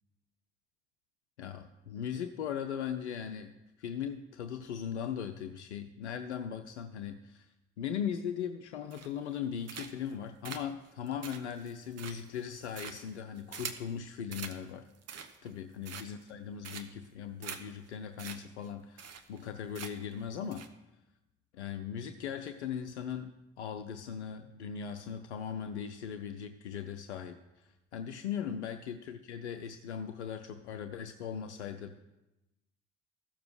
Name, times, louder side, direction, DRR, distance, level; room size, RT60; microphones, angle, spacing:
voice 1, 1.4-3.5 3.8-7.5 7.8-14.8 15.1-20.6 21.5-32.0, left 8 dB, 85° left, 7 dB, 0.5 m, -39 dB
sound 1, 8.9-9.3 9.7-10.1 10.4-13.9 14.3-14.6 14.9-15.5 15.8-16.3 16.6-17.1 17.4-17.6 17.9-18.0 18.2-18.4 18.6-18.7 19.0-19.5 19.7-20.1 20.5-20.7, right 7 dB, 50° right, 1.2 m, -44 dB
14.0 x 6.8 x 6.3 m, 1.0 s
figure-of-eight pair, 45°, 34 cm